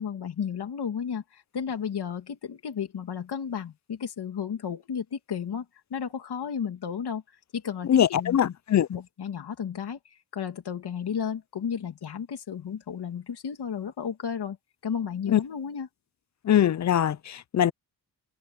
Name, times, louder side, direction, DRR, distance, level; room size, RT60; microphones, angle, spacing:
voice 1, 0.0-5.6 5.9-7.2 7.5-8.5 8.9-14.6 14.8-15.9, left 7 dB, 65° left, 2.8 m, -33 dB
voice 2, 7.9-8.9 15.3-15.4 16.4-17.7, left 10 dB, 45° left, 0.4 m, -22 dB
wide cardioid pair, 160°, 42 cm